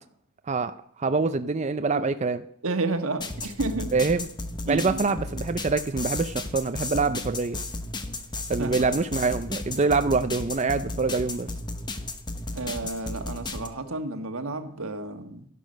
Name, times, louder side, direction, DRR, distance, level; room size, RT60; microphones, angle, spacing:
voice 1, 1.0-2.4 3.9-4.3 4.7-7.6 8.5-11.5, right 4 dB, 35° right, 9 dB, 0.5 m, -25 dB
voice 2, 2.6-3.9 4.6-5.0 8.6-8.8 12.5-15.5, right 2 dB, 90° right, 7 dB, 1.4 m, -31 dB
sound 1, 3.2-13.7, left 2 dB, 20° left, 0.9 m, -34 dB
11.5 x 11.0 x 6.4 m, 0.70 s
head